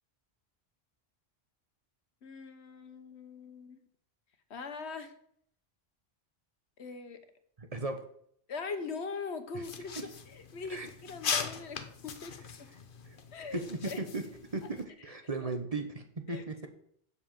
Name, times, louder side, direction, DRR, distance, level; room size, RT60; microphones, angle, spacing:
voice 1, 2.2-3.8 4.5-5.1 6.8-7.2 8.5-10.0 10.3-12.7 13.3-14.0 15.4-15.5 16.3-16.4, left 4 dB, 85° left, 9 dB, 1.4 m, -41 dB
voice 2, 7.6-8.0 9.5-9.6 10.0-10.1 10.7-10.9 13.0-13.2 13.5-14.2 14.5-16.7, right 3 dB, 35° right, 6 dB, 1.1 m, -36 dB
sound 1, 9.6-14.8, left 6 dB, 55° left, 1.0 m, -40 dB
7.7 x 7.0 x 7.4 m, 0.66 s
omnidirectional pair, 1.1 m